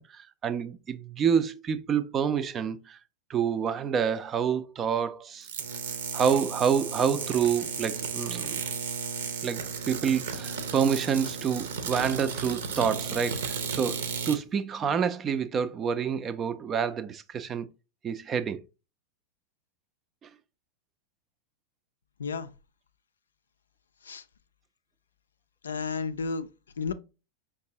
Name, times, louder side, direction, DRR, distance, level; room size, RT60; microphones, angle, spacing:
voice 1, 0.0-3.0 3.3-5.5 6.1-8.6 9.4-17.7 18.0-18.6, right 7 dB, 25° right, 0.4 m, -28 dB
sound 1, 5.4-14.4, right 6 dB, 60° right, 0.7 m, -34 dB
voice 2, 22.2-22.5 24.0-24.2 25.6-26.5 26.8-26.9, left 5 dB, 70° left, 0.4 m, -32 dB
5.2 x 3.6 x 2.6 m
figure-of-eight pair, 90°, 0 cm